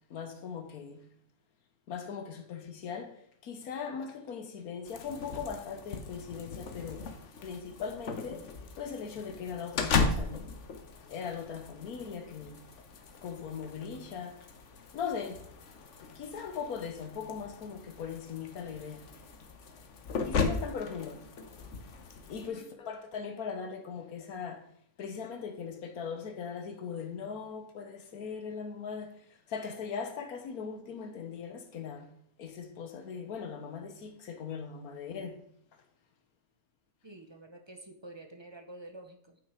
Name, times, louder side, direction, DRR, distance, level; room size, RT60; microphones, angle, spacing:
voice 1, 0.1-1.1 1.9-7.2 7.4-10.5 11.1-12.6 13.2-14.4 14.9-15.4 16.1-19.1 20.2-21.3 22.3-24.6 25.0-35.4, left 6 dB, 80° left, 1.4 m, -39 dB
sound 1, 4.8-22.5, left 4 dB, 55° left, 1.3 m, -37 dB
voice 2, 22.3-22.7 37.0-39.4, right 2 dB, 20° right, 0.8 m, -49 dB
8.4 x 6.2 x 4.9 m
omnidirectional pair, 1.5 m